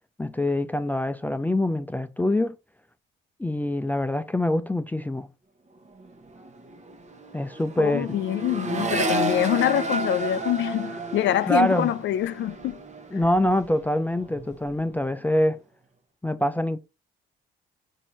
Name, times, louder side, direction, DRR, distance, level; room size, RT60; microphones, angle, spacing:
voice 1, 0.2-2.5 3.4-5.3 7.3-8.1 11.5-11.9 13.1-15.6 16.2-16.8, left 1 dB, 10° left, 0.4 m, -25 dB
Accelerating revving vroom, 5.8-6.1 6.3-13.9 14.2-14.8, right 2 dB, 35° right, 1.0 m, -32 dB
voice 2, 7.8-12.8, left 12 dB, 70° left, 0.4 m, -25 dB
4.4 x 2.7 x 4.2 m
cardioid pair, 90°, 20 cm